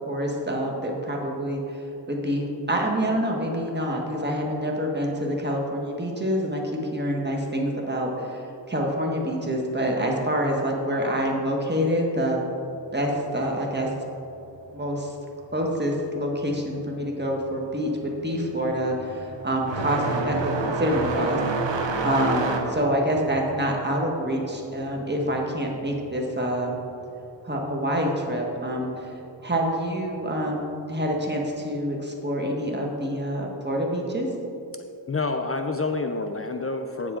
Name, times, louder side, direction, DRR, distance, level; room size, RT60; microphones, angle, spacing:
voice 1, 0.1-6.6 6.9-12.4 12.9-13.9 14.7-15.1 15.5-26.8 27.4-29.1 29.4-34.3, equal, 25° right, -1 dB, 1.6 m, -27 dB
sound 1, 17.1-17.4 17.7-26.0 26.3-27.4 28.3-28.4 29.3-29.4 31.1-31.2, right 3 dB, 80° right, 0.9 m, -29 dB
voice 2, 35.1-37.2, left 3 dB, 35° left, 6 dB, 0.5 m, -28 dB
9.0 x 7.4 x 3.8 m, 2.8 s
cardioid pair, 55°, 44 cm